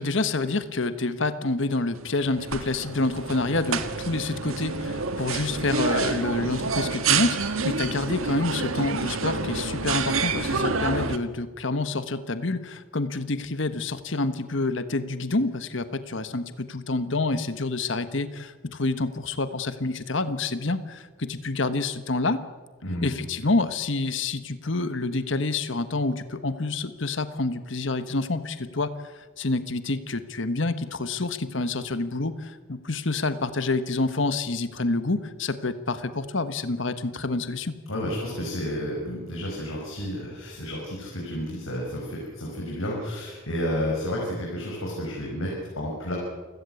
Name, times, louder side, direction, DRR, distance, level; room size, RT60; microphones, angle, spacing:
voice 1, 0.0-22.4 23.0-37.7, left 3 dB, 65° left, 11 dB, 1.3 m, -28 dB
sound 1, 2.0-11.2, right 4 dB, 85° right, 1.7 m, -28 dB
voice 2, 37.9-46.1, equal, 85° left, -3 dB, 6.5 m, -31 dB
29.0 x 16.5 x 8.3 m, 1.3 s
head